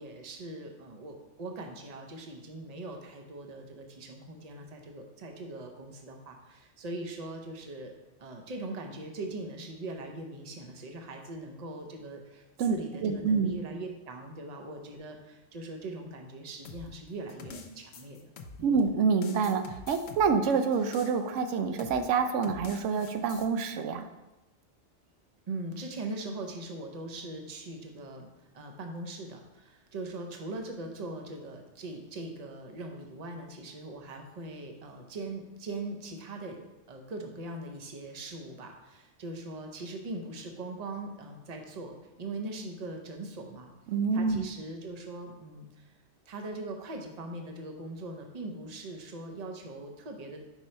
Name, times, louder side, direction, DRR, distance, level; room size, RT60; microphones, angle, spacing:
voice 1, 0.0-7.9 8.2-18.2 18.6-18.8 25.5-28.3 28.5-36.6 36.9-43.7 44.1-45.9 46.3-50.4, right 2 dB, 40° right, 3 dB, 0.8 m, -41 dB
voice 2, 13.0-13.5 18.6-24.1 43.9-44.4, right 5 dB, 90° right, 7 dB, 0.9 m, -27 dB
sound 1, 16.6-18.8 19.2-21.4 21.8-22.0 22.4-23.5, left 4 dB, 70° left, 0.9 m, -46 dB
5.3 x 4.6 x 4.3 m, 1.0 s
omnidirectional pair, 1.2 m